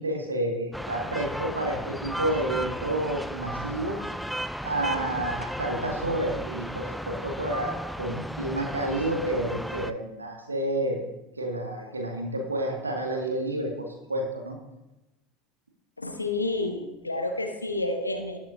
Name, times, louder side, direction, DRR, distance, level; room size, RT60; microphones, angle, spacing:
voice 1, 0.0-4.0 4.6-11.0 11.4-14.6, right 1 dB, 85° right, 0 dB, 2.0 m, -30 dB
sound 1, 0.7-9.9, equal, ahead, 0.6 m, -35 dB
voice 2, 16.0-18.4, left 2 dB, 90° left, 5 dB, 1.1 m, -30 dB
18.5 x 7.8 x 2.7 m, 1.0 s
figure-of-eight pair, 70°, 0 cm